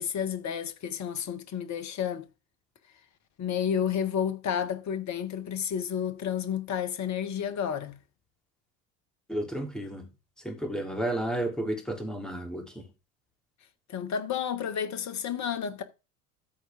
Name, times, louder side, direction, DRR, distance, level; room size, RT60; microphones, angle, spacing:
voice 1, 0.0-2.3 3.4-8.0 13.9-15.8, left 8 dB, 40° left, 1.5 m, -31 dB
voice 2, 9.3-10.1 10.4-12.7, right 1 dB, ahead, 2.9 m, -32 dB
13.5 x 4.7 x 3.5 m
hypercardioid pair, 70°, 42 cm